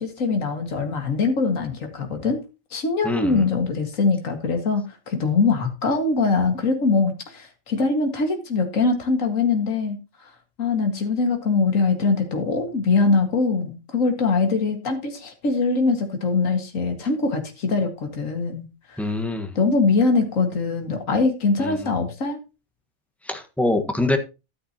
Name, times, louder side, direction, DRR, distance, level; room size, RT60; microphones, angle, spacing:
voice 1, 0.0-2.4 2.7-10.0 10.6-19.0 19.6-22.4, left 4 dB, 65° left, 2.3 m, -22 dB
voice 2, 3.0-3.4 19.0-19.5 21.6-22.0 23.2-24.2, left 2 dB, ahead, 1.3 m, -25 dB
12.0 x 9.8 x 2.9 m
omnidirectional pair, 1.5 m